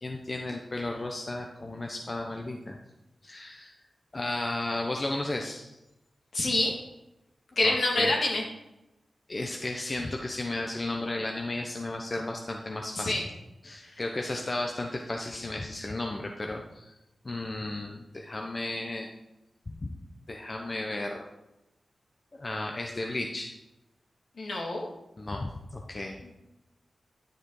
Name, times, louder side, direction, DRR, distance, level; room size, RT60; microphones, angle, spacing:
voice 1, 0.0-2.8 3.2-3.7 4.1-5.8 7.6-8.1 9.3-13.1 13.6-16.9 17.2-19.1 19.7-19.9 20.3-21.3 22.3-23.5 25.2-26.3, left 2 dB, 45° left, 2 dB, 0.9 m, -34 dB
voice 2, 6.3-6.7 7.6-8.4 13.0-13.2 24.4-24.9 26.2-26.3, left 2 dB, 75° left, 0 dB, 2.1 m, -26 dB
10.0 x 6.5 x 4.8 m, 0.96 s
cardioid pair, 40°, 0 cm